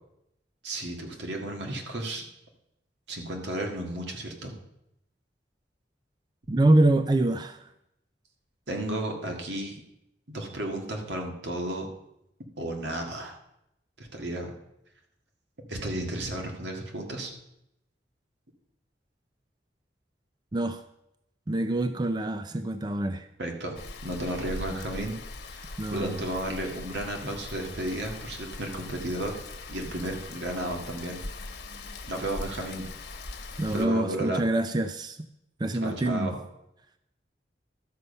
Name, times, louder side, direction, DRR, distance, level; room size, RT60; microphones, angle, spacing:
voice 1, 0.6-2.2 3.1-4.5 8.7-9.8 10.3-11.9 12.6-13.3 14.0-14.5 15.7-17.3 23.4-23.8 24.0-25.2 25.5-29.4 29.7-31.2 32.1-32.8 33.7-34.4 35.8-36.4, right 1 dB, 85° right, 2 dB, 1.9 m, -33 dB
voice 2, 6.5-7.6 20.5-20.8 21.5-23.3 25.8-26.2 33.6-35.2 35.6-36.3, right 2 dB, 25° right, 10 dB, 0.4 m, -25 dB
Rain, 23.8-33.9, left 3 dB, 65° left, 1.3 m, -41 dB
12.5 x 6.8 x 5.4 m, 0.82 s
head